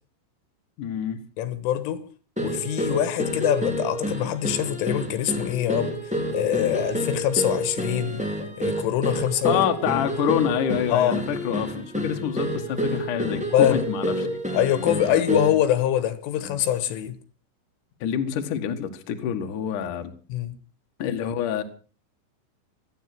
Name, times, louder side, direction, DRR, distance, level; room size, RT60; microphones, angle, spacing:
voice 1, 0.8-1.2 9.4-14.3 14.7-15.2 16.4-16.6 18.0-20.1 21.0-21.6, left 9 dB, 55° left, 2.5 m, -27 dB
voice 2, 1.4-2.0 2.4-8.2 8.6-10.0 10.9-11.2 13.5-13.9 14.5-17.2 20.3-20.6, left 11 dB, 80° left, 3.9 m, -24 dB
sound 1, 2.3-15.7, equal, 5° right, 1.1 m, -29 dB
17.0 x 13.0 x 6.1 m
omnidirectional pair, 5.7 m